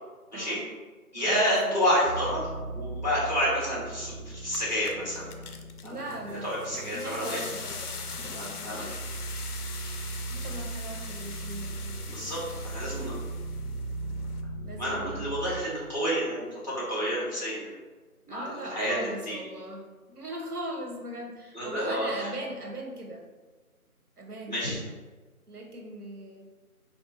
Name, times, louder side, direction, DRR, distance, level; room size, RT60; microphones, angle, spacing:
voice 1, 0.3-0.6 1.2-1.8 5.8-9.0 10.3-12.1 14.6-15.3 18.3-23.2 24.2-24.8 25.5-26.5, right 1 dB, 85° right, 1 dB, 1.0 m, -40 dB
voice 2, 1.1-5.2 5.8-6.0 6.3-7.4 8.4-8.8 12.1-12.4 12.6-13.1 14.8-17.7 18.3-19.4 21.5-22.3 24.5-24.8, equal, 30° left, -7 dB, 1.5 m, -29 dB
sound 1, 2.0-15.6, right 2 dB, 35° right, 1.2 m, -38 dB
sound 2, 3.9-4.0 4.3-14.4, left 5 dB, 80° left, 0.6 m, -42 dB
3.5 x 2.7 x 3.8 m, 1.3 s
figure-of-eight pair, 175°, 45 cm